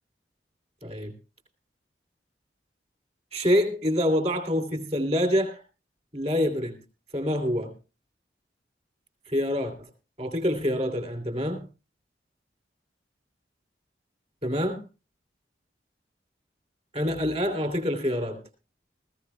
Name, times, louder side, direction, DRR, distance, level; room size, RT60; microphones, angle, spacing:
voice 1, 0.8-1.1 3.3-5.6 6.1-6.8 7.1-7.7 9.3-9.9 10.2-11.6 14.4-14.8 16.9-18.4, equal, 35° right, 2.8 m, -26 dB
20.0 x 15.0 x 2.2 m
head